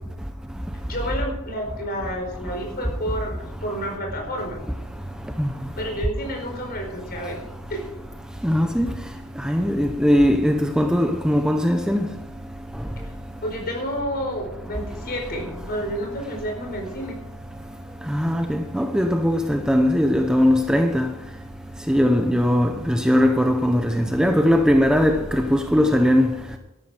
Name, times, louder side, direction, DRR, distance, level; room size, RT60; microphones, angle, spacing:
voice 1, 0.8-4.6 5.8-7.8 13.0-13.1 13.4-17.2, equal, 45° left, 4.7 m, -30 dB
voice 2, 8.4-8.9 9.4-12.0 18.1-21.1 21.9-26.3, equal, 5° right, 0.7 m, -19 dB
13.0 x 12.0 x 5.0 m
head